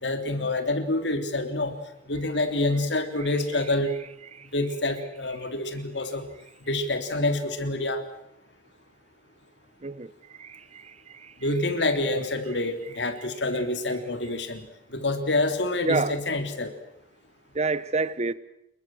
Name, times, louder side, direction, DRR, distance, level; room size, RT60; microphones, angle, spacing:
voice 1, 0.0-1.8 2.1-3.9 4.5-6.3 6.7-8.0 11.4-14.6 14.9-16.7, left 2 dB, 75° left, 3.3 m, -27 dB
voice 2, 10.4-10.9 11.2-11.3 15.8-16.1 17.5-18.3, right 3 dB, 40° right, 1.0 m, -28 dB
28.0 x 22.5 x 7.8 m
head